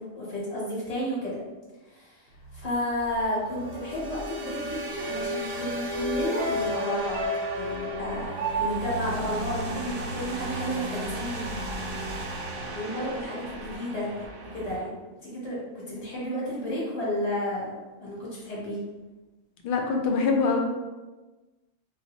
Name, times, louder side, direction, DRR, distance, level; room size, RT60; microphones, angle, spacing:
voice 1, 0.0-1.4 1.8-7.2 7.5-8.3 8.6-11.5 12.7-14.1 14.4-18.8, left 1 dB, 30° left, -8 dB, 1.1 m, -32 dB
sound 1, 2.4-14.8, right 1 dB, 90° right, 1.0 m, -34 dB
sound 2, 6.4-10.8 11.1-11.2, right 2 dB, 55° right, 0.7 m, -33 dB
voice 2, 19.6-20.6, left 4 dB, 80° left, 1 dB, 0.4 m, -24 dB
2.4 x 2.0 x 3.9 m, 1.2 s
omnidirectional pair, 1.4 m